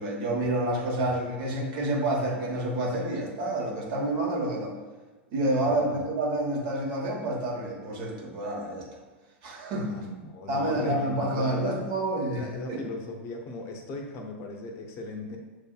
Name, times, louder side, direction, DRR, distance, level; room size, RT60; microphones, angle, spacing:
voice 1, 0.0-4.7 5.3-8.9 9.4-9.9 10.5-12.8, right 1 dB, 55° right, -1 dB, 1.1 m, -28 dB
voice 2, 5.7-6.0 9.9-11.8 12.3-15.4, left 2 dB, 45° left, 3 dB, 0.6 m, -37 dB
6.4 x 2.7 x 2.3 m, 1.3 s
hypercardioid pair, 100°, 6 cm